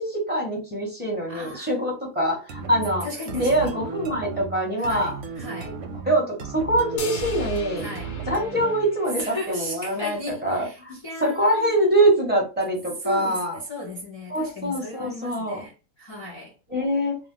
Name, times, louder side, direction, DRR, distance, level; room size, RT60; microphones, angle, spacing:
voice 1, 0.0-3.1 3.3-5.2 6.0-7.8 8.3-13.6 14.3-15.7 16.7-17.2, right 1 dB, 10° right, 0.9 m, -24 dB
voice 2, 1.3-1.7 3.0-3.7 4.8-5.8 7.8-8.1 9.2-11.7 13.0-16.5, left 1 dB, 45° left, 0.3 m, -36 dB
sound 1, 2.5-9.0, right 3 dB, 65° right, 0.9 m, -35 dB
sound 2, 7.0-9.5, left 4 dB, 85° left, 1.1 m, -38 dB
2.7 x 2.0 x 3.7 m
omnidirectional pair, 1.5 m